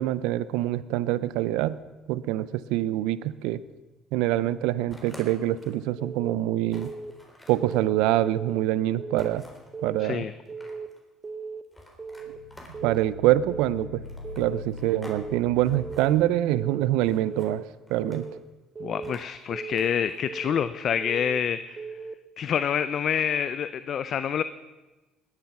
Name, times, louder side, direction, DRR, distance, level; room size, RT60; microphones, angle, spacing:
voice 1, 0.0-1.8 2.1-3.6 4.1-6.9 7.5-9.4 9.8-10.2 12.8-14.0 14.4-17.6 17.9-18.3, right 14 dB, 85° right, 17 dB, 0.5 m, -25 dB
sound 1, 4.9-5.8 6.2-6.3 6.7-7.8 9.2-9.7 10.3-11.0 11.7-13.1 14.0-15.2 15.5-16.1 17.0-17.5 17.9-18.4 19.0-20.2, left 1 dB, 15° left, 3.8 m, -49 dB
Keyboard (musical) / Alarm, 6.0-6.4 6.7-7.1 7.5-7.9 8.2-8.6 9.0-9.4 9.7-10.1 10.5-10.9 11.2-11.6 12.0-12.4 12.7-13.1 13.5-13.9 14.2-14.6 15.0-15.4 15.7-16.1 16.5-16.9 17.2-17.6 18.0-18.4 18.8-19.1 19.5-19.9 20.3-20.6 21.0-21.4 21.8-22.1, right 4 dB, 30° right, 0.8 m, -37 dB
voice 2, 10.0-10.3 18.8-21.9 22.4-24.4, left 8 dB, 55° left, 13 dB, 0.5 m, -27 dB
sound 2, 12.1-16.0, left 2 dB, 80° left, 4.7 m, -42 dB
19.5 x 9.5 x 6.0 m, 1.2 s
supercardioid pair, 85°, 0 cm